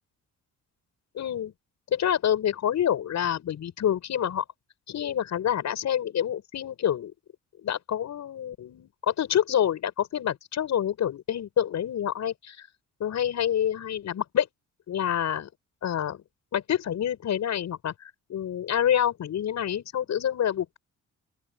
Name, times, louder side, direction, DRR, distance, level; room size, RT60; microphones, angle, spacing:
voice 1, 1.1-1.5 1.9-4.4 4.9-7.1 7.6-12.6 13.0-14.5 14.9-15.5 15.8-16.2 16.5-17.9 18.3-20.8, left 10 dB, 65° left, 7.1 m, -27 dB
open air
cardioid pair, 90°, 30 cm